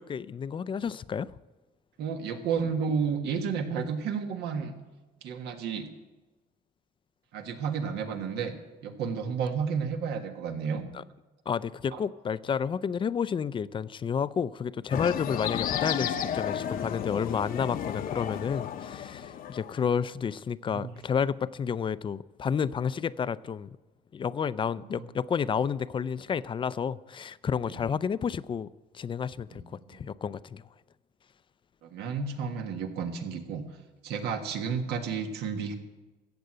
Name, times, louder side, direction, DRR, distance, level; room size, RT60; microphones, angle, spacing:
voice 1, 0.0-1.3 10.9-11.0 11.5-23.8 24.1-28.7 28.9-30.6, left 7 dB, 30° left, 0.4 m, -30 dB
voice 2, 2.0-4.8 5.2-5.9 7.3-8.6 8.8-10.8 11.9-12.0 20.7-21.0 25.0-25.1 27.7-27.9 29.5-30.0 31.8-33.7 34.0-35.7, right 6 dB, 80° right, 1.6 m, -32 dB
sound 1, 14.9-19.9, left 9 dB, 55° left, 0.8 m, -33 dB
15.0 x 7.8 x 7.7 m
cardioid pair, 110°, 17 cm